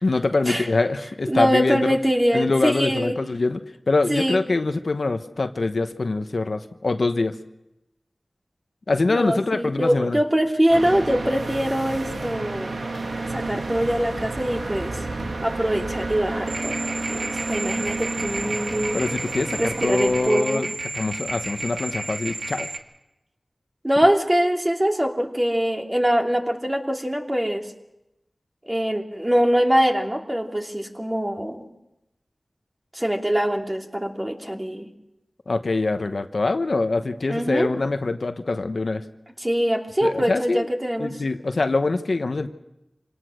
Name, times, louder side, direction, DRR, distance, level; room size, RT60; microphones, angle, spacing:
voice 1, 0.0-2.0 2.3-7.3 8.9-10.2 18.9-20.7 20.9-22.7 35.5-39.0 40.0-40.7 41.0-42.5, left 3 dB, 75° left, 8 dB, 1.0 m, -24 dB
voice 2, 1.3-3.1 4.1-4.4 9.1-12.8 13.3-15.0 15.4-16.8 17.1-19.0 19.6-20.7 23.8-27.7 28.6-31.7 32.9-34.9 37.3-37.7 39.4-41.1, equal, 20° right, 2 dB, 2.7 m, -23 dB
sound 1, 10.7-20.3, right 3 dB, 85° right, 1.6 m, -31 dB
sound 2, 16.5-22.8, right 2 dB, 70° right, 2.1 m, -32 dB
26.0 x 18.5 x 6.4 m, 0.90 s
wide cardioid pair, 50°, 0 cm